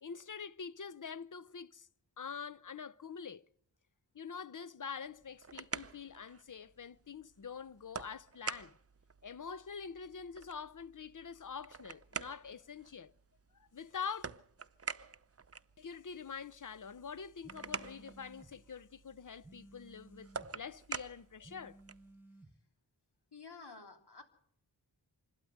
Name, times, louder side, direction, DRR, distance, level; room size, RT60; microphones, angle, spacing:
voice 1, 0.0-1.9 2.2-3.4 4.1-8.8 9.2-13.1 13.6-14.2 15.8-21.8, left 6 dB, 45° left, 0.8 m, -45 dB
sound 1, 5.1-22.1, right 5 dB, 35° right, 0.7 m, -48 dB
sound 2, 17.4-18.5 19.4-20.6 21.4-22.6, right 2 dB, 5° right, 1.7 m, -57 dB
voice 2, 23.3-24.2, left 4 dB, 65° left, 3.5 m, -51 dB
26.5 x 12.5 x 7.9 m
wide cardioid pair, 60°, 43 cm